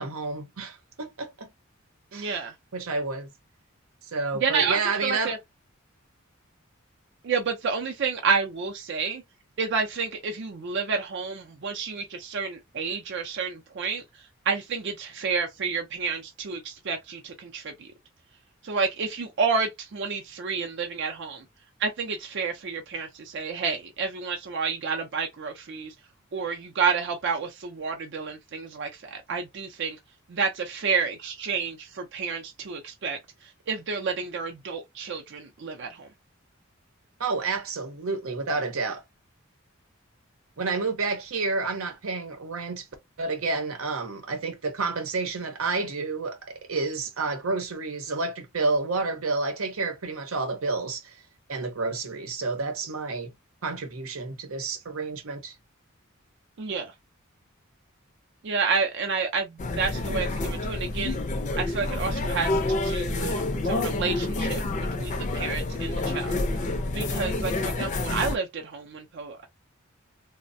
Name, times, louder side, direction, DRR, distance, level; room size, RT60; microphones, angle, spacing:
voice 1, 0.0-1.5 2.1-2.4 2.7-3.3 4.1-5.4 37.2-39.0 40.6-42.9 43.2-51.2 51.5-53.3 53.6-55.5, right 3 dB, 85° right, 0.8 m, -30 dB
voice 2, 2.1-2.5 4.3-5.4 7.2-9.2 9.6-14.0 14.5-17.9 18.6-21.4 21.8-25.9 26.3-30.0 30.3-36.1 56.6-56.9 58.4-61.2 61.6-64.6 65.0-66.4 66.9-69.5, right 5 dB, 60° right, 0.5 m, -30 dB
sound 1, 59.6-68.4, left 2 dB, 35° left, 0.4 m, -28 dB
3.1 x 2.1 x 2.6 m
head